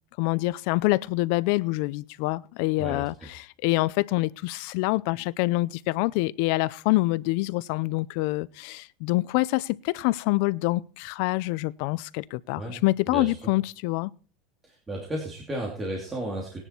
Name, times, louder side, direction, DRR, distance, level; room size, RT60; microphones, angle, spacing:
voice 1, 0.2-14.1, left 21 dB, 60° left, 0.5 m, -26 dB
voice 2, 14.6-16.6, right 1 dB, 15° right, 2.8 m, -33 dB
19.0 x 9.9 x 4.4 m
supercardioid pair, 160°, 0 cm